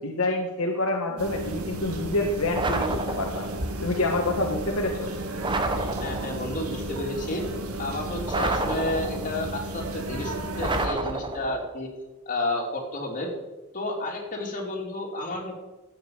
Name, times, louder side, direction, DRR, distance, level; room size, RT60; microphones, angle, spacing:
voice 1, 0.0-3.5 3.8-5.1, left 2 dB, 70° left, 1 dB, 1.6 m, -27 dB
sound 1, 1.2-10.9, right 1 dB, 75° right, 1.8 m, -33 dB
sound 2, 2.5-3.6 5.4-6.5 8.3-9.4 10.6-11.7, right 2 dB, 20° right, 1.1 m, -29 dB
voice 2, 6.0-7.4 7.8-11.9 12.3-13.3 13.7-15.6, left 1 dB, 35° left, -1 dB, 3.7 m, -31 dB
13.0 x 9.0 x 7.0 m, 1.1 s
head